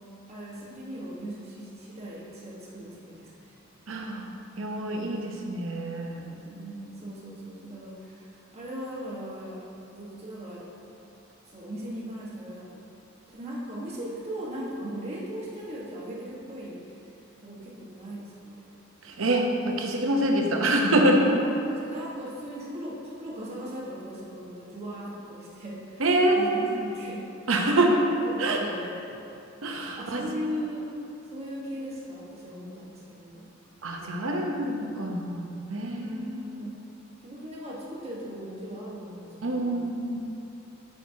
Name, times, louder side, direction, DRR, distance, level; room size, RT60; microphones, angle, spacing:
voice 1, 0.3-3.5 6.3-9.7 9.9-10.7 11.5-12.8 13.3-16.9 17.4-18.7 21.4-26.0 26.3-27.3 28.2-29.2 29.9-30.9 31.3-33.5 34.1-34.5 36.0-36.8 37.2-39.8, equal, 30° right, -6 dB, 1.3 m, -38 dB
voice 2, 3.9-4.3 4.6-6.2 19.0-21.4 26.0-26.8 27.5-28.0 28.4-28.6 29.6-30.3 33.8-35.4 35.7-36.4 39.4-40.2, right 1 dB, 75° right, 2 dB, 0.8 m, -25 dB
9.2 x 5.9 x 2.8 m, 2.7 s
head